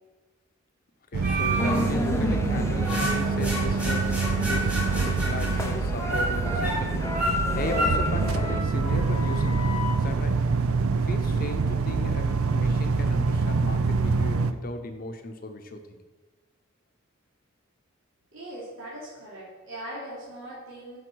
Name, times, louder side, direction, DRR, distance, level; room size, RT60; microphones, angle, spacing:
voice 1, 1.1-10.4 10.9-16.0, left 2 dB, 40° left, 7 dB, 0.7 m, -37 dB
sound 1, 1.1-14.5, right 4 dB, 90° right, 0.6 m, -26 dB
sound 2, 1.2-1.9 2.4-9.9, equal, 5° right, 1.8 m, -31 dB
sound 3, 1.6-8.6, left 1 dB, 15° left, 0.4 m, -33 dB
voice 2, 18.3-21.0, right 1 dB, 70° right, -9 dB, 3.1 m, -40 dB
7.6 x 5.7 x 6.2 m, 1.3 s
head